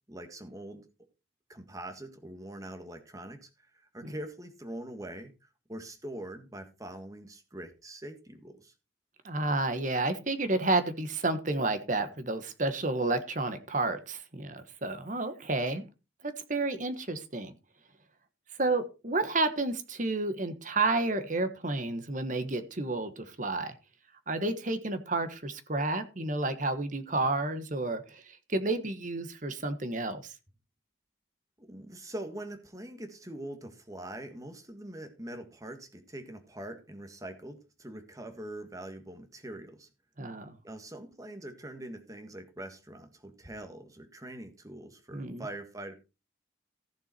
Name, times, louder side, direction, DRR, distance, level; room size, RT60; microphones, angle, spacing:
voice 1, 0.1-0.8 1.5-8.7 31.6-39.9 40.6-45.9, right 1 dB, 15° right, 7 dB, 1.7 m, -43 dB
voice 2, 9.2-15.8 16.2-17.5 18.6-23.7 24.3-28.2 28.5-30.2 40.2-40.5 45.1-45.5, right 2 dB, 40° right, 10 dB, 1.3 m, -31 dB
15.0 x 7.1 x 4.3 m, 0.30 s
head